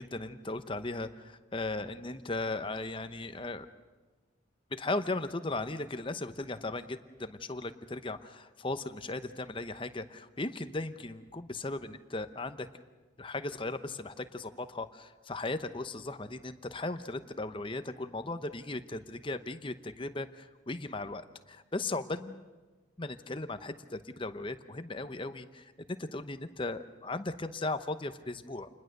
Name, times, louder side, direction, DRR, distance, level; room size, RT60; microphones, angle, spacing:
voice 1, 0.0-3.7 4.7-12.7 13.2-22.4 23.0-28.7, left 2 dB, 25° left, 10 dB, 0.8 m, -37 dB
28.5 x 20.5 x 6.6 m, 1.2 s
head